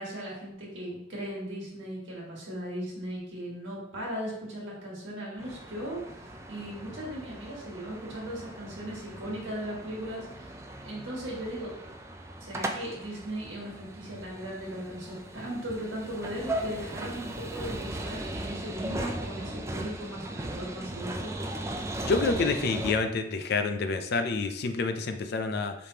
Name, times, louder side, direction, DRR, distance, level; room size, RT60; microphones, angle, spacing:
voice 1, 0.0-10.5 10.8-11.7 12.4-21.3, right 1 dB, 80° right, -4 dB, 1.6 m, -38 dB
sound 1, 5.4-22.9, right 1 dB, 15° right, 0.3 m, -38 dB
voice 2, 22.0-25.7, left 4 dB, 55° left, 8 dB, 0.4 m, -28 dB
5.1 x 3.3 x 2.8 m, 0.83 s
head